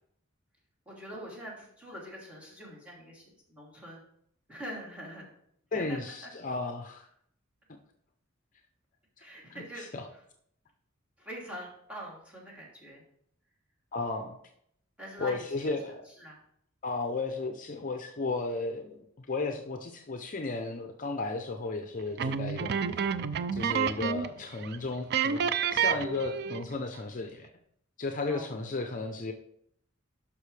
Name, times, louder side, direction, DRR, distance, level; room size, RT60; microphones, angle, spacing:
voice 1, 0.8-4.0 4.5-5.3 5.7-6.3 9.2-10.2 11.2-13.0 15.0-15.7 16.0-16.4 28.3-28.6, equal, 5° right, -5 dB, 3.0 m, -44 dB
voice 2, 5.7-7.1 9.8-10.0 13.9-14.4 15.2-16.0 16.8-22.8 23.5-27.5 28.0-29.3, left 3 dB, 40° left, 5 dB, 0.6 m, -34 dB
sound 1, 22.2-24.4 24.6-24.8 25.1-26.7, right 7 dB, 55° right, 0.4 m, -29 dB
11.5 x 5.6 x 3.3 m, 0.70 s
head